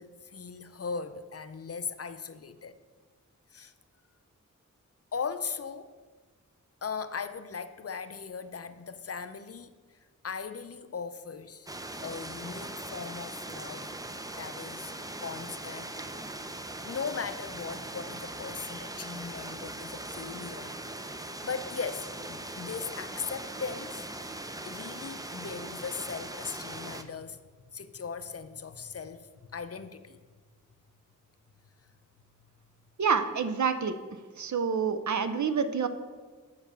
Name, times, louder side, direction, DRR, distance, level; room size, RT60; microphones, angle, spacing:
voice 1, 0.0-2.8 3.5-3.7 5.1-5.9 6.8-10.0 10.2-11.7 12.0-13.9 14.3-14.9 15.2-16.0 16.8-21.0 21.4-24.0 24.6-27.4 27.7-30.2 31.8-31.9, left 5 dB, 50° left, 0.5 m, -38 dB
sound 1, 11.7-27.0, right 2 dB, 10° right, 0.5 m, -40 dB
voice 2, 33.0-34.0 34.4-35.9, right 6 dB, 65° right, 0.6 m, -27 dB
6.8 x 5.6 x 6.8 m
wide cardioid pair, 60°, 32 cm